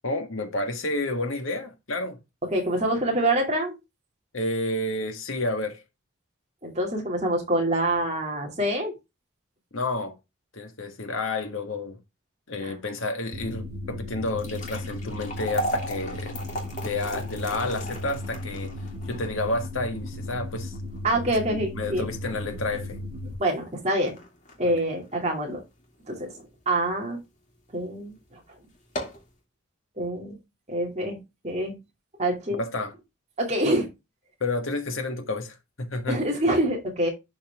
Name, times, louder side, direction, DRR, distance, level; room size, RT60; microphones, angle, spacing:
voice 1, 0.0-2.2 4.3-5.8 9.7-10.2 10.5-12.0 12.5-16.4 16.8-18.7 19.1-20.8 21.5-23.0 24.6-24.8 32.5-32.9 34.4-36.2, left 2 dB, 75° left, 1.7 m, -30 dB
voice 2, 2.5-3.7 6.6-8.9 12.6-12.8 21.0-22.0 23.4-24.1 24.6-25.6 26.1-26.3 26.7-27.2 27.7-28.4 30.0-30.4 30.7-31.2 31.4-31.7 32.2-32.6 33.4-33.9 36.1-37.1, right 1 dB, 35° right, 2.4 m, -26 dB
sound 1, 13.3-23.3, left 1 dB, 50° right, 1.8 m, -36 dB
sound 2, 14.2-26.5 26.9-27.0 27.7-27.9 28.2-28.3 28.7-29.3, equal, 35° left, 2.4 m, -37 dB
11.5 x 4.3 x 3.5 m
head